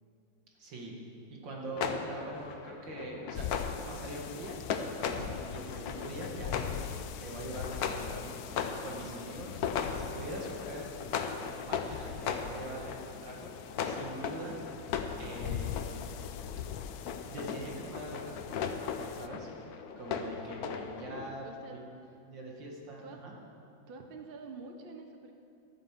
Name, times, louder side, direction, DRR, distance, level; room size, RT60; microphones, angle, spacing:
voice 1, 0.6-0.9 1.4-3.5 3.9-6.9 7.2-8.4 8.8-9.6 9.9-13.5 13.8-14.6 15.2-16.1 17.3-18.7 19.1-19.5 20.0-21.4 21.7-21.8 22.2-23.3, right 1 dB, 65° right, -1 dB, 2.6 m, -43 dB
voice 2, 1.3-1.8 20.8-21.8 22.1-22.2 23.0-23.2 23.9-25.3, right 4 dB, 40° right, 4 dB, 0.8 m, -48 dB
sound 1, 1.6-21.3, left 6 dB, 60° left, 1.1 m, -38 dB
sound 2, 3.3-19.3, left 9 dB, 85° left, 1.4 m, -43 dB
12.5 x 9.4 x 7.5 m, 2.6 s
omnidirectional pair, 2.2 m